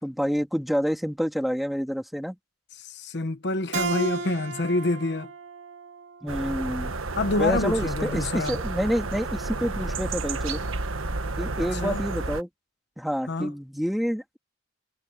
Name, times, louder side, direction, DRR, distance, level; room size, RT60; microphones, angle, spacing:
voice 1, 0.0-2.4 6.2-7.0 7.4-10.6 11.4-12.5 13.0-14.4, equal, ahead, 2.8 m, -28 dB
voice 2, 2.8-5.3 7.2-8.6 11.6-12.0 13.3-13.5, left 2 dB, 55° left, 1.0 m, -27 dB
Keyboard (musical), 3.7-7.0, right 4 dB, 60° right, 2.4 m, -34 dB
sound 1, 6.3-12.4, right 3 dB, 90° right, 1.4 m, -31 dB
head